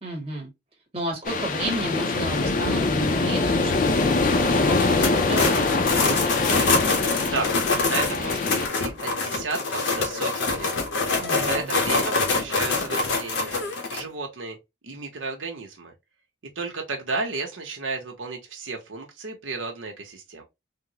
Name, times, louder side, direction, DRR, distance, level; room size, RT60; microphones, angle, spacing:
voice 1, 0.0-0.5 0.9-5.8 11.2-11.7, right 1 dB, 30° right, 1.2 m, -32 dB
sound 1, 1.2-8.7, left 3 dB, 45° left, 0.4 m, -23 dB
sound 2, 4.8-14.0, left 3 dB, 85° left, 0.9 m, -25 dB
voice 2, 7.2-7.5 7.8-10.7 11.4-13.6 13.9-14.6 14.8-15.9 16.6-20.4, right 3 dB, 90° right, 0.9 m, -33 dB
3.6 x 2.0 x 2.8 m
head